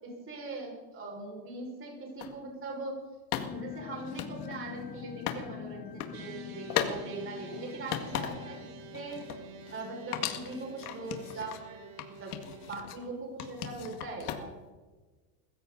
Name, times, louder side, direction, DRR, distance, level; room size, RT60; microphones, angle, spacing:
voice 1, 0.0-3.0 3.5-8.6 8.9-9.4 9.7-11.8 12.1-12.3 12.7-14.5, right 2 dB, 30° right, -1 dB, 5.4 m, -41 dB
sound 1, 2.2-2.3 3.3-5.4 5.8-6.2 6.7-7.0 7.4-8.6 8.9-9.9 10.1-11.6 12.0-13.0 13.4-14.7, left 11 dB, 85° left, 2.1 m, -37 dB
sound 2, 3.3-11.8, left 11 dB, 20° left, 0.4 m, -46 dB
sound 3, 6.1-12.7, right 6 dB, 55° right, 2.9 m, -50 dB
22.0 x 15.0 x 4.0 m, 1.3 s
supercardioid pair, 130°, 44 cm